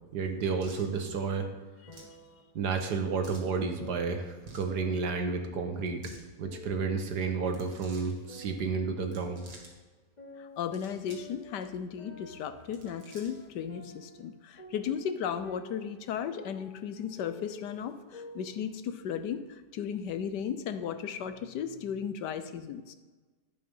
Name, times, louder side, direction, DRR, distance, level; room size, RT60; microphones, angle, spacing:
voice 1, 0.1-1.5 2.5-6.0 6.4-9.4, right 5 dB, 65° right, 5 dB, 1.6 m, -31 dB
sound 1, 0.6-0.9 1.9-2.2 3.2-3.5 4.4-4.7 5.8-6.2 7.4-8.1 9.0-9.7 10.5-11.3 11.6-11.7 12.6-13.5, right 2 dB, 85° right, 2.6 m, -51 dB
sound 2, 0.8-2.4 2.9-4.4 4.7-6.9 7.4-9.8 10.2-14.3 14.6-18.6, left 1 dB, 25° left, 1.4 m, -50 dB
voice 2, 10.4-22.9, left 8 dB, 75° left, 10 dB, 1.3 m, -35 dB
11.0 x 8.5 x 5.5 m, 1.3 s
omnidirectional pair, 1.9 m